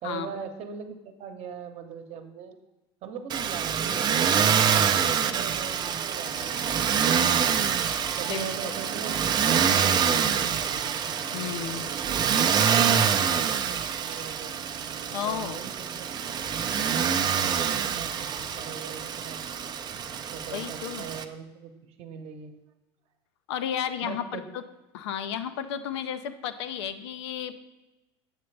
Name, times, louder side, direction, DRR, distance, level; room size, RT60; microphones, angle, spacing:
voice 1, 0.0-2.6 3.0-4.7 5.2-7.7 8.1-11.3 12.1-14.6 15.2-16.1 16.8-19.4 20.3-22.5 24.0-24.4, right 6 dB, 50° right, 7 dB, 0.9 m, -41 dB
Motor vehicle (road), 3.3-21.2, right 7 dB, 30° right, 0.5 m, -26 dB
voice 2, 8.3-8.7 11.3-11.9 15.1-15.6 20.5-21.1 23.5-24.6 24.9-27.6, left 9 dB, 85° left, 11 dB, 0.6 m, -33 dB
8.1 x 6.8 x 3.3 m, 1.0 s
supercardioid pair, 110°, 14 cm